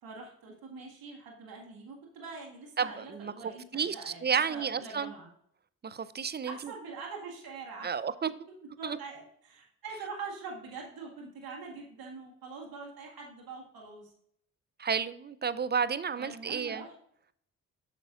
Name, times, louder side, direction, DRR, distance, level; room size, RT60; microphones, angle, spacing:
voice 1, 0.0-5.3 6.4-8.0 8.5-14.1 16.2-16.9, right 4 dB, 70° right, 1.8 m, -44 dB
voice 2, 2.8-3.3 3.7-5.1 5.8-6.7 7.8-8.3 8.8-9.0 14.8-16.8, right 6 dB, 30° right, 0.5 m, -31 dB
8.9 x 6.1 x 2.4 m
hypercardioid pair, 45°, 36 cm